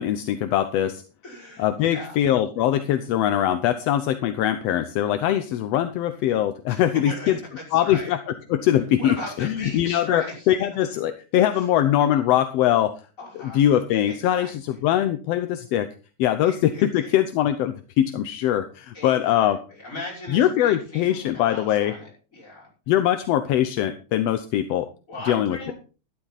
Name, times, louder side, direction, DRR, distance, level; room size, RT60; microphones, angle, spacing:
voice 1, 0.0-1.0 1.6-7.4 7.7-8.2 8.5-9.1 9.4-12.9 13.5-15.9 16.2-19.6 20.3-21.9 22.9-24.9 25.3-25.7, left 11 dB, 70° left, 9 dB, 1.6 m, -22 dB
voice 2, 1.2-2.2 6.7-8.1 8.6-8.7 9.0-10.6 11.5-11.7 13.2-13.6 14.1-14.8 16.4-17.1 18.9-22.7 25.1-25.7, left 1 dB, 25° left, -3 dB, 6.0 m, -38 dB
12.5 x 11.5 x 4.1 m, 0.35 s
omnidirectional pair, 3.5 m